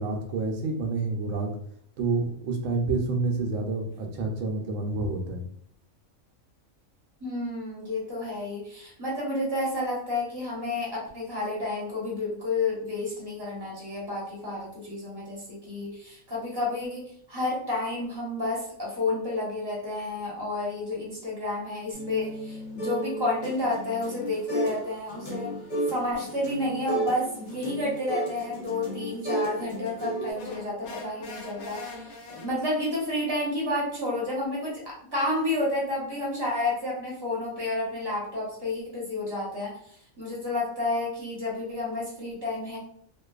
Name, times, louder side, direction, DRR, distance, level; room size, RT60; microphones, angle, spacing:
voice 1, 0.0-1.5 2.0-5.4, right 3 dB, 70° right, 2 dB, 0.9 m, -28 dB
voice 2, 7.2-25.5 25.9-39.8 40.2-42.8, left 2 dB, 20° right, -6 dB, 0.8 m, -30 dB
sound 1, 21.9-24.8 25.1-30.3, right 1 dB, 40° left, 0.8 m, -33 dB
sound 2, 30.4-33.0, left 3 dB, 65° left, 0.8 m, -42 dB
2.6 x 2.2 x 2.3 m, 0.63 s
omnidirectional pair, 1.4 m